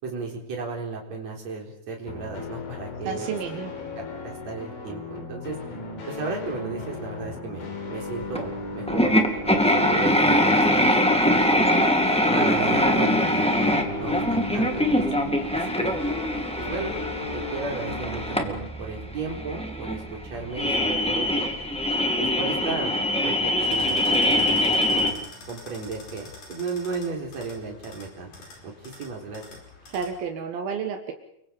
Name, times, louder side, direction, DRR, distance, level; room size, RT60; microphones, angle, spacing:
voice 1, 0.0-3.7 4.0-5.6 6.1-11.7 12.3-13.2 13.5-15.0 15.5-16.0 16.5-16.9 17.3-21.5 22.2-22.9 23.2-28.3 28.6-29.4, right 4 dB, 50° right, 0 dB, 5.2 m, -34 dB
sound 1, 2.1-18.7, left 3 dB, 85° left, 5.6 m, -36 dB
voice 2, 3.0-3.7 12.4-12.9 29.9-31.1, right 6 dB, 85° right, 5 dB, 3.4 m, -31 dB
sound 2, 8.3-8.4 8.9-25.1, left 1 dB, 5° left, 1.2 m, -23 dB
sound 3, 23.6-30.2, left 3 dB, 60° left, 6.4 m, -46 dB
30.0 x 23.5 x 5.3 m, 0.75 s
omnidirectional pair, 4.1 m